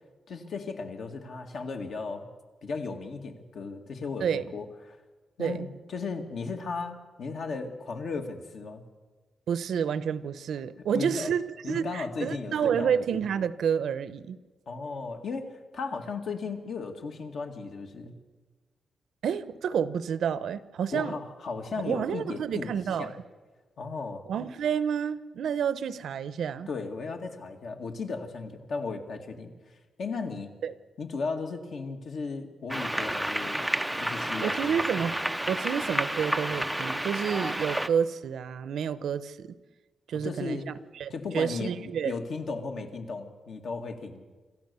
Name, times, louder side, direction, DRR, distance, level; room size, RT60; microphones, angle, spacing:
voice 1, 0.3-2.3 2.6-5.0 5.4-8.8 10.8-11.3 11.6-12.9 14.7-18.2 20.9-23.2 23.8-24.3 26.7-30.5 31.0-33.6 34.0-34.8 40.1-40.7 41.1-44.3, left 4 dB, 55° left, 4 dB, 2.0 m, -36 dB
voice 2, 9.5-11.4 11.7-14.4 19.2-21.1 21.8-23.1 24.3-26.7 30.6-30.7 34.4-35.2 35.5-39.5 40.1-40.6 41.0-42.1, right 7 dB, 70° right, 15 dB, 0.8 m, -29 dB
sound 1, 32.7-37.9, right 1 dB, 5° right, 0.5 m, -30 dB
26.5 x 14.0 x 6.9 m, 1.3 s
wide cardioid pair, 175°, 0 cm